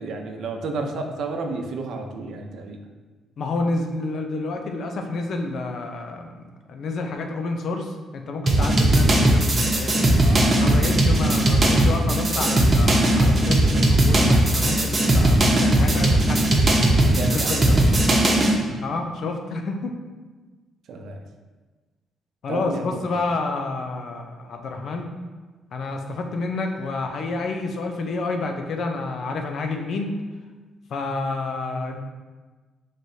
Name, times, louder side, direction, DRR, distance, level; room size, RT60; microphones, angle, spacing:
voice 1, 0.0-2.8 10.2-10.8 17.0-17.8 18.2-18.8 20.9-21.2 22.5-23.1, right 3 dB, 70° right, 3 dB, 0.6 m, -32 dB
voice 2, 3.4-10.1 10.6-16.8 17.2-17.9 18.8-20.0 22.4-25.1 25.7-30.1 30.9-32.0, left 3 dB, 60° left, 4 dB, 0.6 m, -29 dB
sound 1, 8.5-18.6, right 1 dB, 35° right, 0.9 m, -18 dB
6.0 x 3.2 x 2.7 m, 1.3 s
cardioid pair, 90°, 0 cm